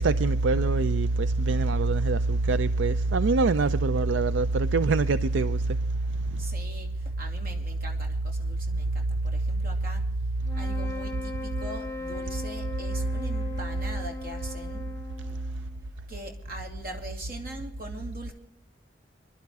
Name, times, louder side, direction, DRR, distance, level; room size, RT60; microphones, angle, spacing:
voice 1, 0.0-5.6, right 3 dB, 80° right, 0.4 m, -24 dB
voice 2, 6.4-10.0 10.5-14.9 16.1-18.3, right 1 dB, 50° right, 2.6 m, -40 dB
sound 1, 10.4-15.9, left 2 dB, 15° left, 0.8 m, -38 dB
24.5 x 11.5 x 3.6 m
head